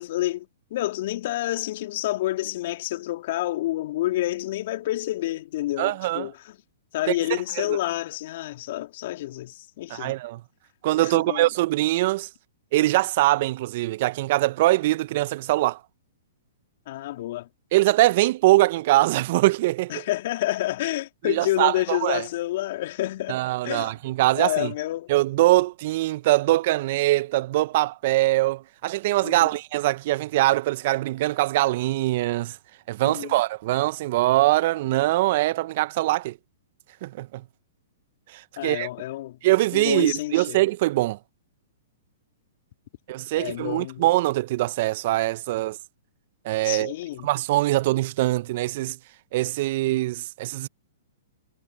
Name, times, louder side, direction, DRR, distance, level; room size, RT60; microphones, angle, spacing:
voice 1, 0.0-6.6 6.9-10.1 11.0-11.5 16.9-17.5 19.9-23.9 24.3-25.1 29.2-29.5 33.0-33.4 38.6-39.4 39.7-40.6 43.4-44.0 46.6-47.3, left 15 dB, 55° left, 3.0 m, -29 dB
voice 2, 5.8-6.3 7.1-7.2 7.6-7.8 9.9-10.4 10.8-12.3 12.7-15.8 17.7-20.1 21.2-22.2 23.3-24.7 25.1-32.6 32.9-36.4 37.0-37.4 38.3-38.9 39.4-41.2 43.1-45.8 46.4-46.9 47.2-49.0 49.3-50.7, right 17 dB, 50° right, 1.0 m, -23 dB
hypercardioid pair, 120°, 0 cm